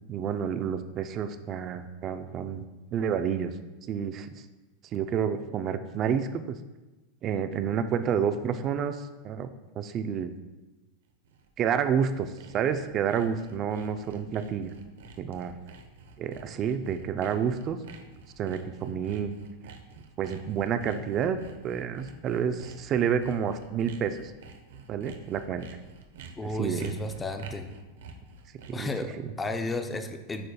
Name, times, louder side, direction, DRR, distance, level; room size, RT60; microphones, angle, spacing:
voice 1, 0.1-2.6 2.9-3.5 3.9-4.3 4.9-6.6 7.2-9.5 9.8-10.3 11.6-14.7 15.2-15.5 16.2-17.8 18.4-19.3 20.2-21.4 21.6-24.3 24.9-25.7 26.4-26.9 28.7-29.1, right 7 dB, 35° right, 9 dB, 0.4 m, -29 dB
Sawing, 11.1-28.9, right 4 dB, 85° right, 0.7 m, -49 dB
voice 2, 26.4-27.8 28.7-30.5, left 2 dB, 15° left, 6 dB, 0.5 m, -33 dB
8.5 x 5.0 x 2.3 m, 1.1 s
supercardioid pair, 130°, 0 cm